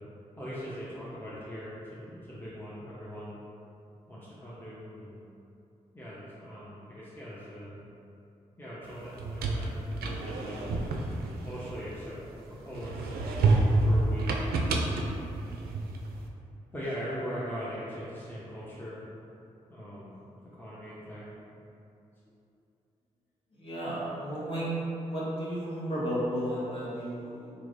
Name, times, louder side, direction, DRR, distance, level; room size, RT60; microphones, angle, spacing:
voice 1, 0.4-3.4 4.1-5.2 5.9-7.8 8.6-12.2 12.5-14.3 16.7-19.0 19.7-20.1 20.5-21.4, equal, 15° left, -10 dB, 0.9 m, -41 dB
sound 1, 9.0-12.3 12.7-16.1, right 2 dB, 75° right, 0.4 m, -28 dB
voice 2, 23.6-24.8 25.0-27.5, equal, 35° left, -8 dB, 1.4 m, -33 dB
3.9 x 3.1 x 2.6 m, 2.8 s
hypercardioid pair, 40°, 16 cm